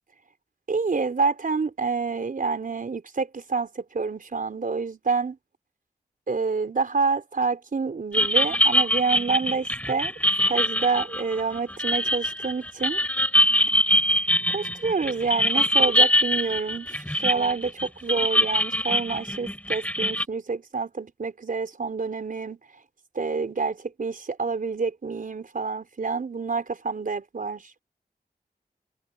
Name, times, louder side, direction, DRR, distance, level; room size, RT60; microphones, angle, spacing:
voice 1, 0.7-5.4 6.3-10.1 10.5-13.0 14.5-22.6 23.1-27.7, right 4 dB, 60° right, 4.7 m, -28 dB
sound 1, 8.1-20.2, equal, 10° left, 7.7 m, -23 dB
cardioid pair, 60°, 16 cm